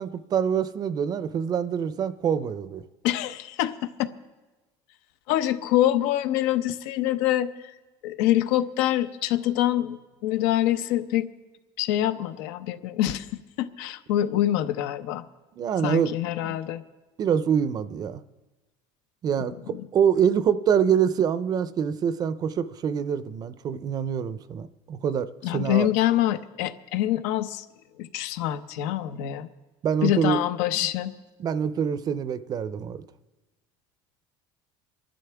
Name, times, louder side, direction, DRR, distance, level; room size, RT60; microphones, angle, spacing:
voice 1, 0.0-2.8 15.6-16.1 16.4-16.6 17.2-18.2 19.2-25.9 29.8-30.4 30.7-30.9 31.4-33.0, right 8 dB, 35° right, 15 dB, 0.5 m, -25 dB
voice 2, 3.0-3.9 5.3-7.5 8.0-10.0 10.2-11.3 11.8-13.3 13.6-15.2 15.8-16.8 19.7-19.9 25.4-27.6 28.0-29.5 30.0-31.1, left 13 dB, 85° left, 11 dB, 0.8 m, -25 dB
24.5 x 11.5 x 3.4 m, 1.2 s
cardioid pair, 145°, 12 cm